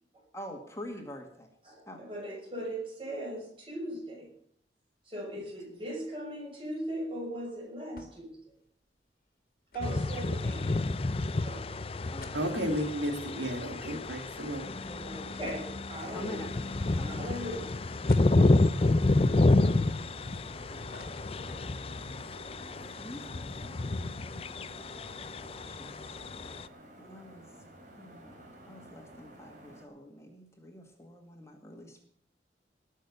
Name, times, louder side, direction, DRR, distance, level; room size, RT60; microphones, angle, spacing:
voice 1, 0.3-1.6 1.9-2.1 5.7-5.9 10.4-11.0 12.1-12.6 14.0-14.5 14.8-15.5 16.1-16.6 16.9-17.3 18.1-22.2 22.6-25.1 25.6-26.7 27.0-27.6 28.0-28.4 28.6-32.1, left 1 dB, 15° left, 3 dB, 1.9 m, -47 dB
voice 2, 1.7-4.3 5.0-8.5 9.7-10.6 11.4-11.9 13.7-13.8 15.0-16.4 17.0-17.6, right 1 dB, 30° right, -1 dB, 6.0 m, -39 dB
sound 1, 8.0-8.4 8.7-8.8 9.7-11.0 11.5-11.6 11.9-14.4 14.8-14.9 15.5-16.6 17.1-17.2 18.1-18.9 19.5-20.4 20.7-22.0 22.4-22.5 22.7-23.0, left 3 dB, 55° left, 1.9 m, -52 dB
sound 2, 9.8-26.7, left 2 dB, 35° left, 0.5 m, -29 dB
voice 3, 12.3-14.8, equal, 90° right, 5 dB, 2.4 m, -33 dB
sound 3, 16.0-29.9, right 1 dB, 45° right, 3.6 m, -51 dB
19.5 x 6.5 x 8.2 m, 0.62 s
head